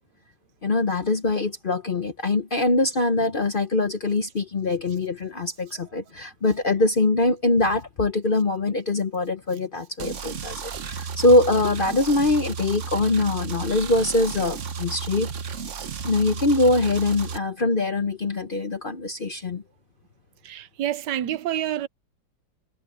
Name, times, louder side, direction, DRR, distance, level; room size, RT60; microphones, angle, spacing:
voice 1, 0.6-15.3 16.0-19.6, left 2 dB, 40° left, 0.8 m, -23 dB
sound 1, 10.0-17.4, right 6 dB, 50° right, 1.2 m, -33 dB
voice 2, 20.4-21.9, right 12 dB, 80° right, 1.4 m, -28 dB
omnidirectional pair, 1.9 m